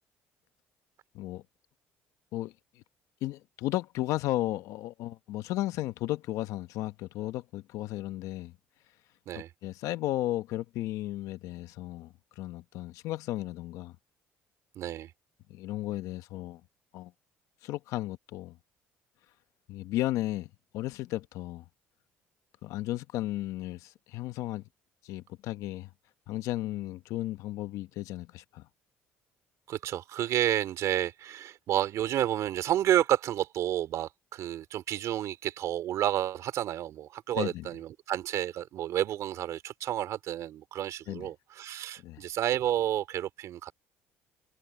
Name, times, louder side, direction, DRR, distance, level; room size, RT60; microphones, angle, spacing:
voice 1, 2.3-2.8 3.2-8.5 9.3-13.9 15.5-16.6 16.9-17.1 17.6-18.6 19.7-21.6 22.6-24.6 25.0-25.9 26.3-28.7 37.3-37.7 41.1-41.3 42.0-42.2, left 15 dB, 75° left, 1.0 m, -34 dB
voice 2, 14.7-15.1 29.7-43.7, right 12 dB, 65° right, 3.0 m, -30 dB
supercardioid pair, 85°, 6 cm